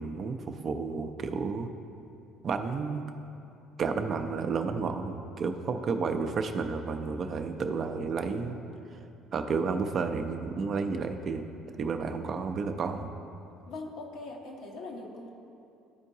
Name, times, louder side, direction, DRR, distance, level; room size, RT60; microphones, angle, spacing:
voice 1, 0.0-1.7 2.4-3.1 3.8-8.6 9.3-11.5 11.8-13.1, right 4 dB, 50° right, 6 dB, 0.5 m, -31 dB
voice 2, 13.7-15.3, left 2 dB, 70° left, 0 dB, 1.1 m, -41 dB
12.5 x 4.4 x 2.7 m, 2.7 s
hypercardioid pair, 60°, 0 cm